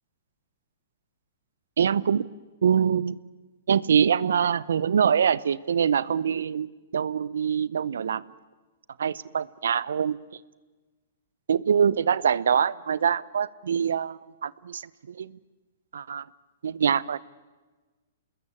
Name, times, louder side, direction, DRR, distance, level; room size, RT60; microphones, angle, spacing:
voice 1, 1.8-2.3 2.6-3.2 3.7-8.2 9.0-10.2 11.5-14.8 15.1-15.3 15.9-16.2 16.6-17.2, right 7 dB, 75° right, 20 dB, 0.8 m, -24 dB
27.5 x 21.0 x 8.6 m, 1.2 s
hypercardioid pair, 130°, 0 cm